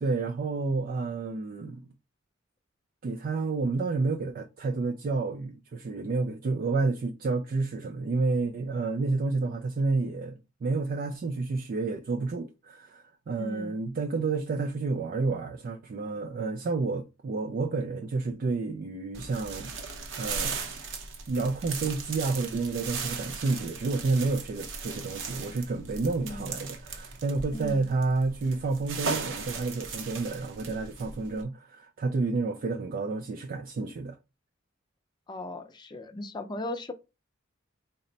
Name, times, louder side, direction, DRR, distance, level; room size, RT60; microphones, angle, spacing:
voice 1, 0.0-1.8 3.0-19.7 20.2-20.7 21.3-34.2, right 3 dB, 45° right, 0.3 m, -30 dB
voice 2, 13.4-13.8 26.2-26.5 27.5-27.9 35.3-36.9, left 1 dB, 25° left, 0.5 m, -37 dB
sound 1, 19.1-31.4, right 4 dB, 70° right, 0.7 m, -37 dB
4.0 x 2.1 x 3.9 m
head